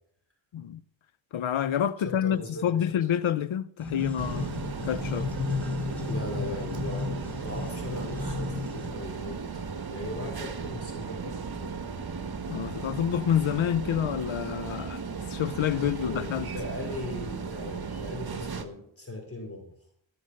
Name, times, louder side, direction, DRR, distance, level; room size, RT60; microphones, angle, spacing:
voice 1, 1.3-4.5 4.8-5.4 12.5-15.0 15.3-16.5, left 9 dB, 80° left, 0.8 m, -28 dB
voice 2, 2.2-3.0 6.1-9.4 9.9-11.8 15.7-19.7, left 2 dB, 30° left, 5.0 m, -39 dB
sound 1, 3.8-8.9, left 4 dB, 5° left, 4.2 m, -34 dB
sound 2, 4.2-18.6, right 5 dB, 50° right, 1.5 m, -36 dB
16.5 x 7.1 x 6.5 m
cardioid pair, 70°, 47 cm